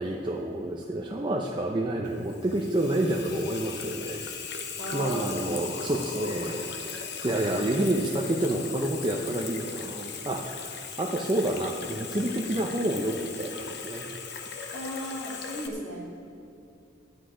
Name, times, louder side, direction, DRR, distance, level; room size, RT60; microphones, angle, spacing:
voice 1, 0.0-4.2 4.9-6.7 7.2-10.6 11.0-14.1, right 1 dB, 25° right, -1 dB, 0.7 m, -29 dB
Water tap faucet / Sink (filling or washing), 2.0-15.7, left 5 dB, 60° left, 0.9 m, -38 dB
voice 2, 4.8-5.6 14.7-16.0, equal, 45° left, -5 dB, 3.1 m, -36 dB
12.5 x 9.9 x 5.0 m, 2.6 s
head